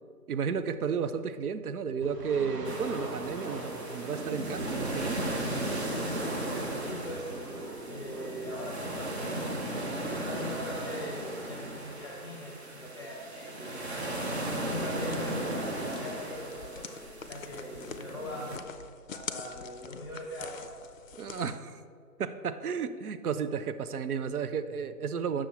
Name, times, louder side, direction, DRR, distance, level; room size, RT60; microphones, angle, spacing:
voice 1, 0.3-5.4 21.2-21.8 22.2-25.5, right 6 dB, 65° right, 11 dB, 0.6 m, -33 dB
sound 1, 2.0-9.0, right 2 dB, 80° right, 1.4 m, -43 dB
sound 2, 2.6-18.6, right 1 dB, 45° right, 0.9 m, -36 dB
voice 2, 5.9-6.3 6.8-7.3 7.9-9.8 10.2-14.1 14.5-17.0 17.3-18.7 19.1-20.6, left 1 dB, 20° left, -4 dB, 0.7 m, -41 dB
sound 3, 15.0-21.6, left 6 dB, 55° left, 0.5 m, -45 dB
7.9 x 6.1 x 4.2 m, 2.3 s
figure-of-eight pair, 155°, 48 cm